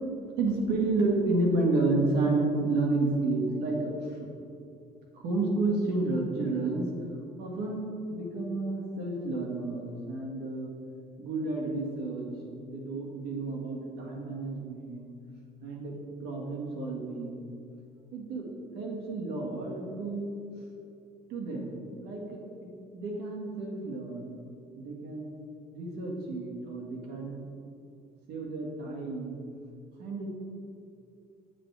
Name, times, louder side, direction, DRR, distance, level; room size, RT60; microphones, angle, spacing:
voice 1, 0.4-4.2 5.1-6.9 7.4-10.7 11.2-12.3 12.6-15.1 15.6-17.5 18.1-18.5 18.7-20.3 21.3-24.4 24.8-25.3 25.7-27.4 28.3-29.4 30.0-30.3, right 2 dB, 85° right, -1 dB, 1.9 m, -31 dB
9.7 x 7.5 x 3.5 m, 2.5 s
cardioid pair, 110°, 17 cm